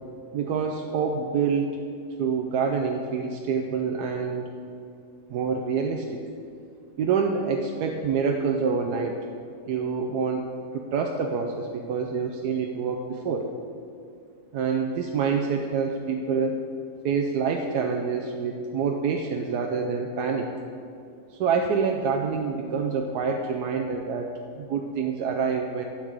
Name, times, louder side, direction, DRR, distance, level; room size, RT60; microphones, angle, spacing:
voice 1, 0.3-1.8 2.2-4.5 5.3-6.2 7.0-9.2 9.7-10.4 10.7-13.5 14.5-16.6 17.0-20.5 21.3-25.8, right 5 dB, 75° right, 3 dB, 1.2 m, -27 dB
12.0 x 5.0 x 8.0 m, 2.4 s
omnidirectional pair, 1.8 m